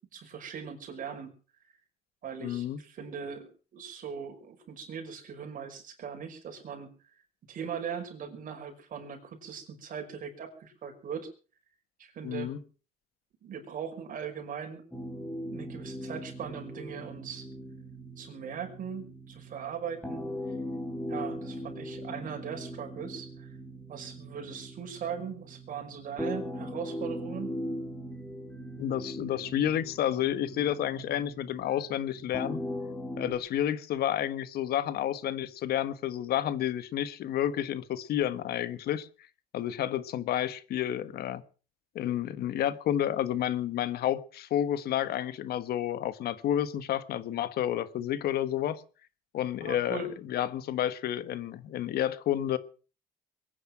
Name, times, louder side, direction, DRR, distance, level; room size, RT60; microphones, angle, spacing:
voice 1, 0.1-1.3 2.2-6.9 7.5-11.3 12.0-12.5 13.4-14.8 15.5-17.5 18.2-20.3 21.1-23.5 23.9-27.6 49.6-50.1, right 7 dB, 55° right, 4 dB, 5.4 m, -39 dB
voice 2, 2.4-2.8 12.2-12.6 28.8-32.6 33.2-39.1 39.5-41.4 41.9-48.8 49.3-52.6, left 11 dB, 70° left, 14 dB, 1.4 m, -30 dB
sound 1, 14.9-33.3, equal, 10° left, 4.3 m, -40 dB
22.5 x 9.9 x 6.0 m, 0.38 s
cardioid pair, 110°, 17 cm